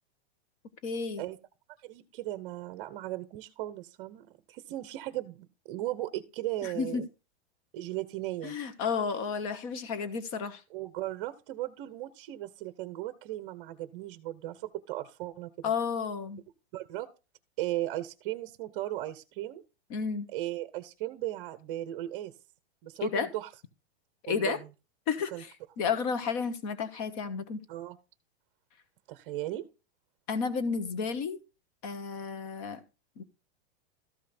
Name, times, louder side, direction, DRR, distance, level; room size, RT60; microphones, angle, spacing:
voice 1, 0.8-1.2 6.6-7.0 8.4-10.6 15.6-16.4 19.9-20.3 23.0-23.3 24.3-24.6 25.1-25.5 25.8-27.6 30.3-31.4 31.8-32.8 33.2-33.3, left 5 dB, 35° left, 1.4 m, -32 dB
voice 2, 1.8-7.1 7.7-8.6 10.7-15.5 16.7-17.1 17.6-19.6 20.3-22.3 22.8-23.5 24.3-24.6 25.3-25.4 27.7-28.0 29.1-29.6, right 15 dB, 30° right, 0.9 m, -37 dB
13.5 x 5.6 x 4.3 m
supercardioid pair, 170°, 32 cm